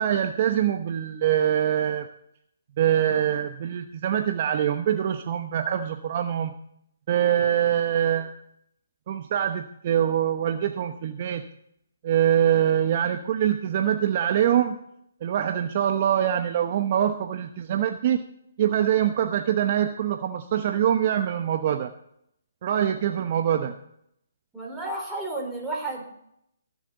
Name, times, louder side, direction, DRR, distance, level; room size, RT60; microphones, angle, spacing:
voice 1, 0.0-2.1 2.8-6.5 7.1-8.3 9.1-11.4 12.0-14.8 15.2-18.2 18.6-21.9 22.6-23.7, right 10 dB, 45° right, 6 dB, 0.9 m, -24 dB
voice 2, 24.5-26.0, right 2 dB, 10° right, -2 dB, 3.8 m, -32 dB
22.0 x 7.4 x 4.0 m, 0.73 s
figure-of-eight pair, 140°, 0 cm